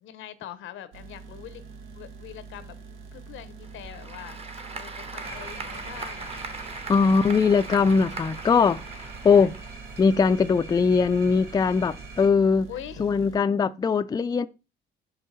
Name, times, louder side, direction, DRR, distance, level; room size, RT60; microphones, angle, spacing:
voice 1, 0.0-1.6 2.0-2.7 3.1-4.4 4.7-6.5 9.3-9.5 12.7-13.1, left 11 dB, 85° left, 0.8 m, -43 dB
sound 1, 0.9-13.4, right 5 dB, 85° right, 1.1 m, -45 dB
Applause / Crowd, 3.6-10.2, right 3 dB, 30° right, 1.0 m, -39 dB
sound 2, 5.2-12.3, right 3 dB, 55° right, 2.8 m, -44 dB
voice 2, 6.9-8.8 9.2-9.5 10.0-12.7 13.0-14.5, left 5 dB, 20° left, 0.3 m, -20 dB
5.5 x 5.5 x 4.0 m
cardioid pair, 90°, 20 cm